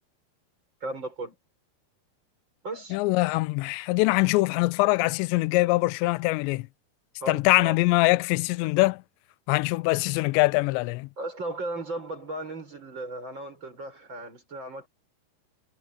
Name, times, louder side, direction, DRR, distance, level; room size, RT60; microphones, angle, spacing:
voice 1, 0.8-1.3 2.6-3.0 7.2-7.7 11.2-14.9, right 2 dB, 25° right, 6.5 m, -36 dB
voice 2, 2.9-6.7 7.3-9.0 9.5-11.1, left 22 dB, 80° left, 2.8 m, -23 dB
omnidirectional pair, 5.4 m